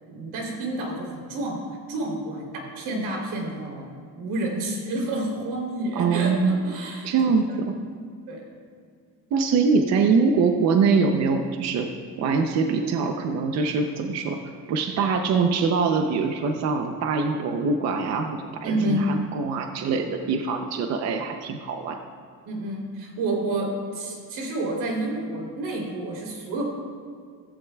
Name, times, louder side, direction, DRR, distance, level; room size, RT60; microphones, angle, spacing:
voice 1, 0.1-1.6 1.9-6.3 6.6-7.1 7.5-7.6 8.3-8.4 18.6-19.1 22.4-26.6, right 1 dB, 90° right, -1 dB, 3.3 m, -29 dB
voice 2, 5.9-6.6 7.0-7.7 9.3-11.9 12.2-14.4 14.7-22.0, right 5 dB, 45° right, 5 dB, 0.7 m, -23 dB
15.5 x 15.0 x 2.3 m, 2.1 s
cardioid pair, 170°, 37 cm